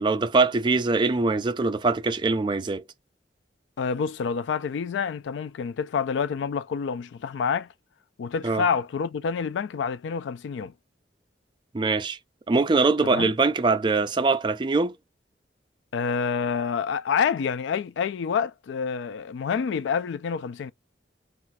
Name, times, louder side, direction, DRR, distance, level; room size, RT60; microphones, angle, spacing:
voice 1, 0.0-2.8 8.4-8.6 11.7-12.2 12.5-14.9, right 3 dB, 25° right, 0.3 m, -23 dB
voice 2, 3.8-7.7 8.2-10.7 13.0-13.3 15.9-20.7, left 6 dB, 85° left, 0.3 m, -28 dB
2.4 x 2.3 x 4.0 m
head